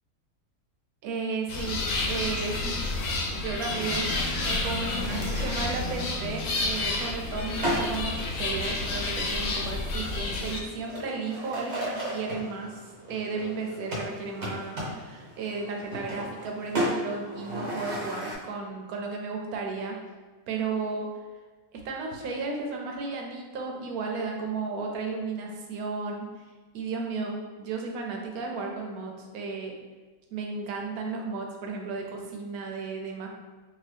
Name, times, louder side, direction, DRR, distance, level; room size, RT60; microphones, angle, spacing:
voice 1, 1.0-2.9 3.3-12.8 13.1-20.0 20.5-21.1 21.7-26.3 26.7-29.7 30.3-33.3, right 4 dB, 85° right, 1 dB, 1.1 m, -34 dB
sound 1, 1.5-10.6, left 2 dB, 90° left, 1.1 m, -30 dB
Animal, 3.4-7.4, left 1 dB, 50° left, 0.5 m, -40 dB
sound 2, 3.6-18.4, equal, 55° right, 1.2 m, -36 dB
2.7 x 2.7 x 3.3 m, 1.3 s
omnidirectional pair, 1.5 m